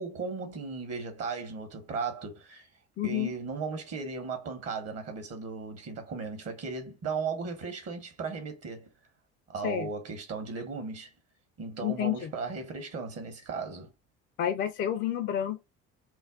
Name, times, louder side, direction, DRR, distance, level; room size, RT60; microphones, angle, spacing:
voice 1, 0.0-2.7 3.0-8.9 9.5-11.1 11.6-13.9, right 4 dB, 40° right, 0.9 m, -36 dB
voice 2, 3.0-3.3 9.6-9.9 11.8-12.3 14.4-15.6, left 10 dB, 30° left, 0.4 m, -29 dB
2.5 x 2.0 x 3.6 m
figure-of-eight pair, 60°, 36 cm